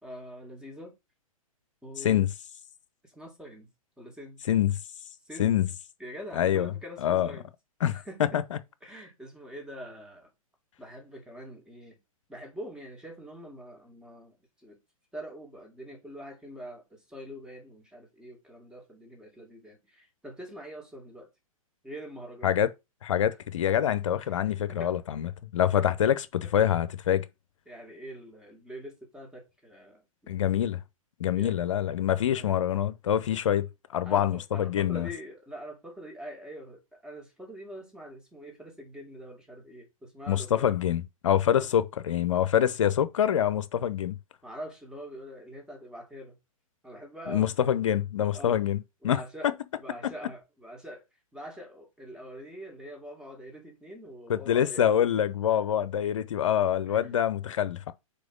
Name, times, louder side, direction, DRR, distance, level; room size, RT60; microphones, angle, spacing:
voice 1, 0.0-0.9 1.8-2.3 3.0-3.7 4.0-4.4 5.2-5.6 6.0-7.5 7.9-8.4 8.8-10.3 10.8-12.0 12.3-14.8 15.1-21.3 21.8-22.6 24.2-24.4 24.7-24.9 25.7-25.9 26.4-26.5 27.7-30.4 31.4-31.6 32.3-32.5 34.0-40.8 41.5-41.7 44.4-46.4 46.8-47.5 48.3-48.7 49.0-51.0 51.3-54.9 55.5-55.9 56.8-57.2, equal, 5° right, 2.2 m, -44 dB
voice 2, 6.4-6.7 7.0-7.3 7.8-8.0 8.3-8.6 22.4-22.7 23.0-27.2 30.3-30.8 31.2-33.7 33.9-35.1 40.3-44.2 47.3-49.5 54.3-57.9, left 10 dB, 55° left, 0.8 m, -25 dB
4.9 x 4.6 x 5.2 m
figure-of-eight pair, 110°, 19 cm